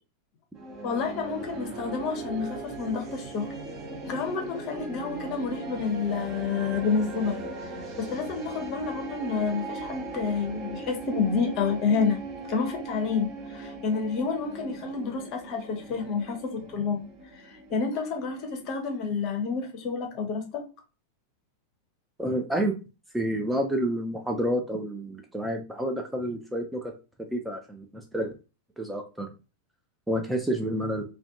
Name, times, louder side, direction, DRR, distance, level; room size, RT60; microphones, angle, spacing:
sound 1, 0.5-18.7, right 2 dB, 30° right, 0.8 m, -39 dB
voice 1, 0.8-3.5 4.0-7.4 8.0-12.2 12.5-17.1 17.3-20.6, left 5 dB, 40° left, 0.6 m, -29 dB
voice 2, 22.2-22.7 23.1-26.9 27.3-28.3 28.8-29.3 30.1-31.0, right 1 dB, 5° right, 0.4 m, -29 dB
2.4 x 2.2 x 2.6 m
figure-of-eight pair, 90°, 0 cm